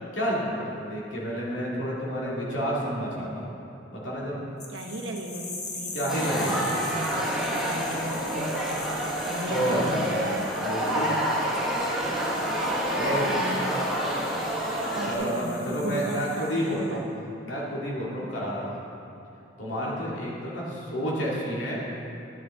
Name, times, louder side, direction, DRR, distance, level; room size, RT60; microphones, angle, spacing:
voice 1, 0.1-3.5 3.9-4.4 5.9-6.7 9.5-10.0 10.6-11.2 12.9-13.4 15.1-17.0 17.4-18.8 19.6-21.8, equal, 70° left, -5 dB, 2.2 m, -30 dB
sound 1, 4.6-16.9, left 3 dB, 40° left, 1.2 m, -42 dB
voice 2, 4.7-10.5 13.2-13.6 14.9-17.2 18.1-18.3, right 2 dB, 70° right, 2 dB, 0.9 m, -35 dB
sound 2, 6.1-15.1, equal, ahead, 1.3 m, -28 dB
11.0 x 8.4 x 3.6 m, 2.8 s
head